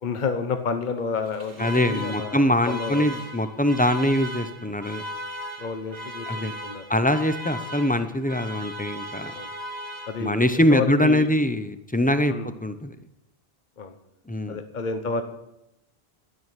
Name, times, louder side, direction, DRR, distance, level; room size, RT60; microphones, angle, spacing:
voice 1, 0.0-3.1 5.6-6.8 9.3-9.5 10.1-11.3 12.3-12.5 13.8-13.9 14.5-15.2, left 5 dB, 50° left, 7 dB, 1.0 m, -30 dB
Alarm, 1.2-10.6, equal, 40° right, 1.5 m, -37 dB
voice 2, 1.6-5.0 6.3-6.5 6.9-9.3 10.2-13.0 14.3-14.6, left 1 dB, 10° left, 10 dB, 0.6 m, -23 dB
12.5 x 6.3 x 9.0 m, 0.89 s
omnidirectional pair, 1.0 m